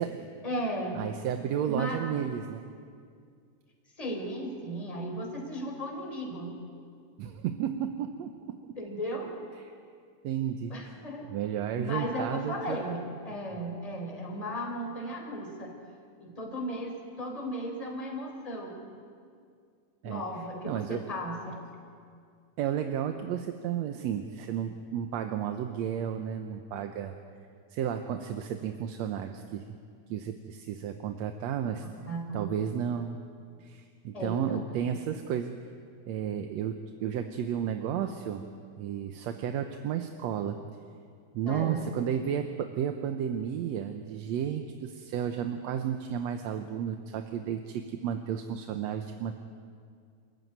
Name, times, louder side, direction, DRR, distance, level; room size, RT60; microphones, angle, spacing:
voice 1, 0.4-1.0 1.7-2.0 4.0-6.5 8.8-9.3 10.7-11.2 11.7-15.7 16.2-18.9 20.0-21.6 32.1-32.5 34.1-34.6 41.5-41.8, equal, 10° left, 1 dB, 4.0 m, -35 dB
voice 2, 1.0-2.6 7.2-8.6 9.7-9.8 10.2-10.7 11.3-12.8 20.0-20.2 20.7-21.0 22.6-27.1 27.7-29.6 30.1-31.9 32.3-33.2 33.6-35.5 36.1-36.7 37.0-38.4 38.8-40.6 41.3-49.3, right 9 dB, 70° right, 6 dB, 2.0 m, -32 dB
27.0 x 15.0 x 9.4 m, 2.2 s
omnidirectional pair, 3.4 m